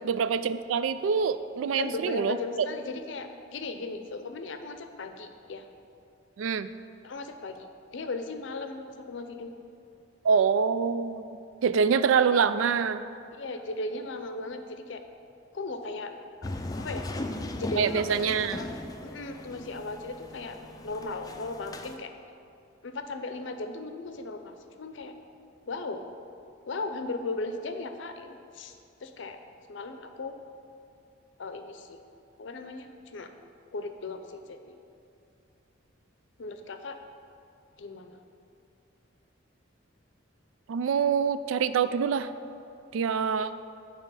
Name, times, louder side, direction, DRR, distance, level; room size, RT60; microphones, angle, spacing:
voice 1, 0.0-2.4 6.4-6.7 10.2-11.3 11.6-13.0 17.8-18.6 40.7-42.3 42.9-43.6, right 6 dB, 85° right, 13 dB, 0.3 m, -25 dB
voice 2, 1.8-5.7 7.0-7.7 7.9-9.5 13.3-15.0 15.5-16.1 16.4-16.5 16.8-17.1 17.5-18.7 19.0-20.6 20.8-22.1 22.8-25.1 25.7-26.1 26.6-29.4 29.7-30.3 31.4-32.0 32.4-33.3 33.7-34.7 36.4-37.0 37.8-38.2, left 3 dB, 65° left, 7 dB, 0.6 m, -37 dB
sound 1, 16.4-22.0, left 1 dB, 20° left, 0.4 m, -38 dB
8.3 x 5.0 x 5.5 m, 2.6 s
head